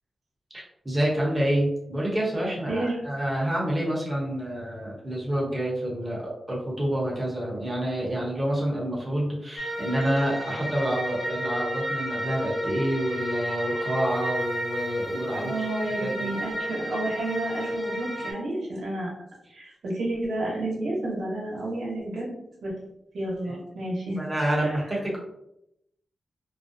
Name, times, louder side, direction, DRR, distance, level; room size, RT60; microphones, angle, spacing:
voice 1, 0.5-15.7 16.0-16.3 23.4-23.6 24.1-25.2, right 1 dB, 15° right, -5 dB, 1.0 m, -28 dB
voice 2, 2.7-3.0 15.1-19.1 19.5-22.3 22.6-22.7 23.1-24.2 24.6-24.8, right 1 dB, 85° right, -4 dB, 0.8 m, -31 dB
sound 1, 9.6-18.3, equal, 15° left, 0.9 m, -32 dB
2.5 x 2.1 x 2.6 m, 0.82 s
wide cardioid pair, 95°, 0 cm